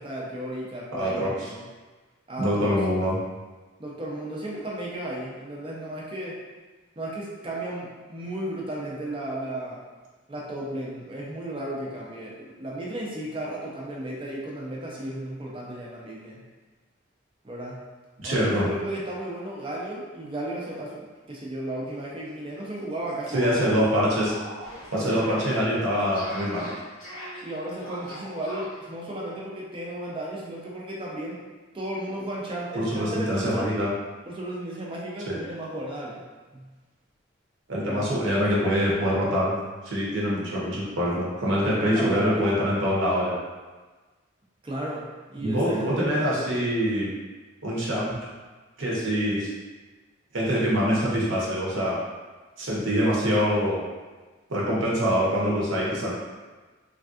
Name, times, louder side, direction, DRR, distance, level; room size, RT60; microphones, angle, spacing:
voice 1, 0.0-1.6 2.3-2.8 3.8-6.4 7.0-9.8 10.3-16.4 17.4-17.8 18.2-23.9 25.0-25.4 27.4-31.4 31.7-33.7 34.2-36.2 36.5-36.7 37.9-38.1 41.6-42.5 44.6-46.5, right 1 dB, 25° right, -4 dB, 0.5 m, -34 dB
voice 2, 0.9-1.5 2.4-3.2 18.2-18.7 23.3-24.3 24.9-26.7 32.7-33.9 35.3-35.4 37.7-39.6 39.8-43.3 45.4-47.1 47.6-48.2 48.8-49.5 50.3-52.0 52.6-53.8 54.5-56.1, equal, 75° right, -5 dB, 0.8 m, -24 dB
sound 1, 21.8-22.0 22.3-22.4 22.7-28.8, right 1 dB, 85° left, 1.1 m, -41 dB
3.3 x 2.6 x 2.4 m, 1.3 s
head